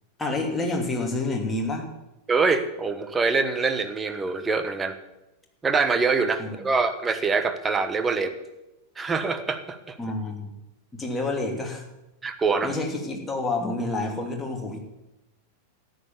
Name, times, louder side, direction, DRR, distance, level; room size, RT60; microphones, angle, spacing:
voice 1, 0.2-1.9 6.4-6.7 10.0-10.5 10.9-11.8 12.6-14.8, left 2 dB, 10° left, 1 dB, 2.9 m, -28 dB
voice 2, 2.3-5.0 5.6-8.3 9.0-10.0 12.2-12.7, right 4 dB, 15° right, 9 dB, 1.3 m, -24 dB
13.0 x 9.6 x 7.2 m, 0.95 s
figure-of-eight pair, 90°, 0 cm